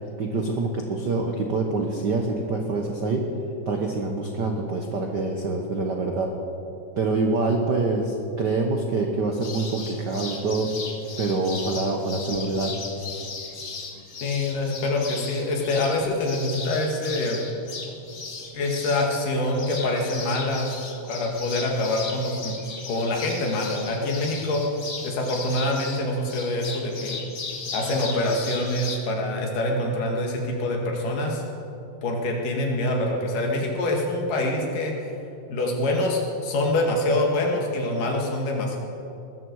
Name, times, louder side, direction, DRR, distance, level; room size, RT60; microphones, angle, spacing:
voice 1, 0.2-3.2 3.7-6.3 7.0-10.7 11.2-12.8, right 3 dB, 75° right, 2 dB, 0.9 m, -25 dB
sound 1, 9.4-29.0, left 4 dB, 40° left, 1.1 m, -37 dB
voice 2, 14.2-17.4 18.5-20.7 21.1-22.6 22.9-24.6 25.0-27.2 27.7-31.4 32.0-34.9 35.5-38.8, left 1 dB, 90° left, 0 dB, 3.7 m, -25 dB
20.5 x 14.0 x 4.7 m, 2.8 s
omnidirectional pair, 3.6 m